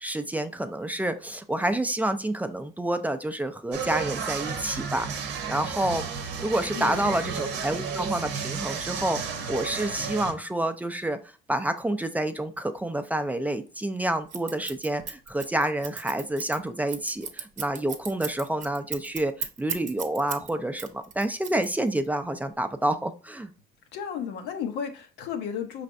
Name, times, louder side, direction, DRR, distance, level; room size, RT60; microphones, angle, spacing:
voice 1, 0.0-5.1 5.5-6.1 6.4-11.2 11.5-23.5, right 1 dB, 10° right, 0.4 m, -28 dB
sound 1, 3.7-10.3, right 6 dB, 90° right, 0.8 m, -32 dB
voice 2, 6.7-7.3 23.9-25.8, left 7 dB, 85° left, 0.8 m, -34 dB
Scissors, 14.3-20.5 20.8-22.1, right 7 dB, 45° right, 0.7 m, -35 dB
5.0 x 3.3 x 2.5 m
cardioid pair, 110°, 17 cm